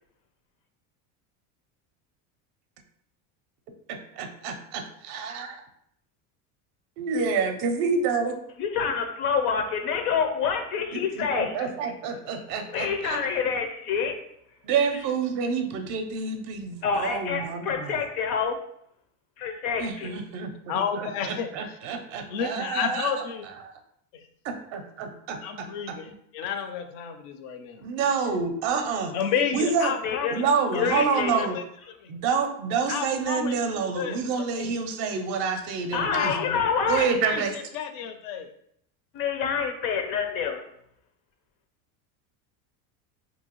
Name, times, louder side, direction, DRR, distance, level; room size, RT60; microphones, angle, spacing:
voice 1, 3.9-5.6 7.0-8.4 10.9-13.2 14.6-18.0 19.8-23.2 23.6-23.7 24.4-26.1 27.8-29.1 29.5-29.9 30.3-31.6 32.1-36.6 36.9-37.6, right 5 dB, 40° right, 6 dB, 0.5 m, -28 dB
voice 2, 8.6-11.7 12.7-14.1 16.8-18.6 19.4-20.1 30.0-30.4 30.7-31.5 35.9-37.1 39.1-40.6, left 6 dB, 90° left, 5 dB, 0.8 m, -27 dB
voice 3, 20.7-21.5 22.3-23.4 24.1-24.2 25.4-27.8 29.1-30.4 30.7-31.6 32.0-32.1 32.9-33.5 34.0-34.2 34.6-34.8 36.1-36.5 37.2-38.5, left 7 dB, 50° left, 7 dB, 0.5 m, -31 dB
4.5 x 2.7 x 2.9 m, 0.72 s
cardioid pair, 170°, 42 cm